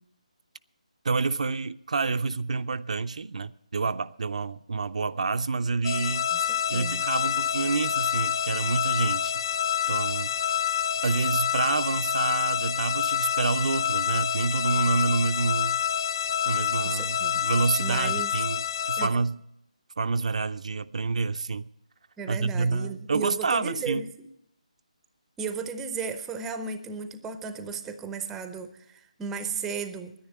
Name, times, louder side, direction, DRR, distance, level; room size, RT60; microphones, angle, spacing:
voice 1, 1.0-6.3 6.7-9.3 9.9-10.6 11.0-15.8 16.5-19.4 20.0-21.7 22.3-24.0, right 4 dB, 65° right, 0.4 m, -28 dB
sound 1, 5.8-19.1, left 9 dB, 35° left, 0.7 m, -27 dB
voice 2, 6.3-7.0 16.8-17.4 17.8-18.4 19.0-19.1 22.2-24.3 25.4-30.1, right 5 dB, 5° right, 0.5 m, -35 dB
10.0 x 10.0 x 8.8 m
figure-of-eight pair, 165°, 4 cm